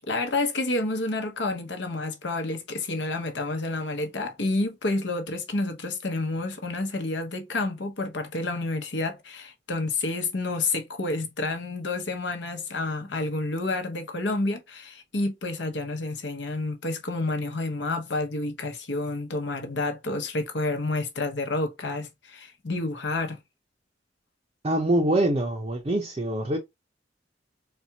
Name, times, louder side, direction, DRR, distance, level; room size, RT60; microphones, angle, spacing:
voice 1, 0.1-23.4, left 2 dB, 70° left, 0.9 m, -29 dB
voice 2, 24.6-26.6, right 1 dB, 30° right, 0.5 m, -24 dB
4.1 x 2.3 x 2.8 m
head